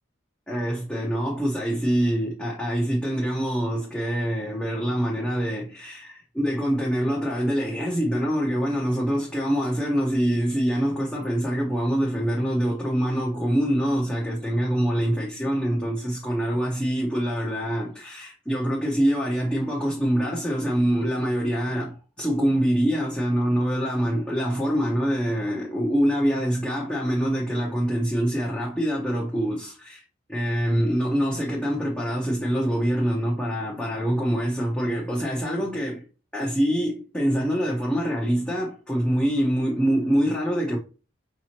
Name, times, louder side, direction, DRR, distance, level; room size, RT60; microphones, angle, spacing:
voice 1, 0.5-30.0 30.3-36.0 36.3-40.8, equal, 5° left, 0.8 m, -25 dB
5.4 x 2.9 x 2.9 m
head